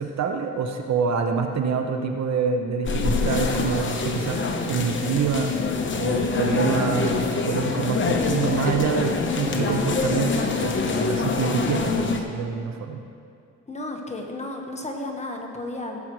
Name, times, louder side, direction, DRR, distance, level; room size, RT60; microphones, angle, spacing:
voice 1, 0.0-4.4 4.7-5.5 6.0-13.0, right 6 dB, 60° right, 4 dB, 1.0 m, -26 dB
sound 1, 2.9-12.2, left 4 dB, 40° left, 1.0 m, -25 dB
voice 2, 13.7-16.0, left 2 dB, 20° left, 2 dB, 1.4 m, -33 dB
16.5 x 7.5 x 3.2 m, 2.4 s
cardioid pair, 90°, 30 cm